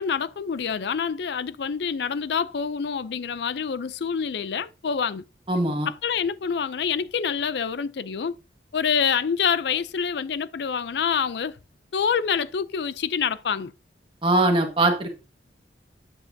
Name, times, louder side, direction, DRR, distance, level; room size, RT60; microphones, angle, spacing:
voice 1, 0.0-5.2 5.9-8.3 8.7-11.6 11.9-13.7, left 7 dB, 65° left, 0.4 m, -26 dB
voice 2, 5.5-5.9 14.2-15.1, right 2 dB, 30° right, 1.5 m, -21 dB
8.6 x 7.4 x 2.7 m
head